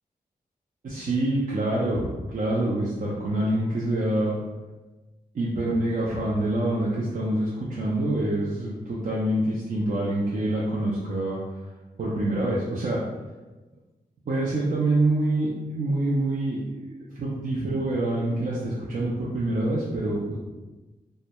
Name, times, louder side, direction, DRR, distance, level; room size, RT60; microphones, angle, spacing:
voice 1, 0.8-4.4 5.3-11.4 12.0-13.0 14.3-16.9 17.2-20.4, right 1 dB, 55° right, -6 dB, 0.5 m, -26 dB
2.2 x 2.2 x 2.8 m, 1.2 s
cardioid pair, 45°, 16 cm